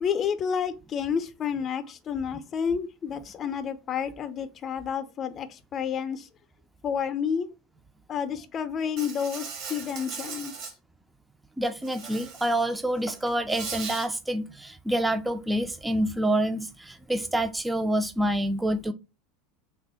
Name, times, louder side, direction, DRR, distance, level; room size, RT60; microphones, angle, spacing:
voice 1, 0.0-6.3 6.8-7.5 8.1-10.7, left 7 dB, 35° left, 0.6 m, -30 dB
Insect, 9.0-10.7 11.8-12.6 13.0-14.1, right 5 dB, 50° right, 0.9 m, -38 dB
voice 2, 11.6-18.9, right 1 dB, 10° right, 0.4 m, -27 dB
3.4 x 2.2 x 4.2 m
figure-of-eight pair, 80°, 0 cm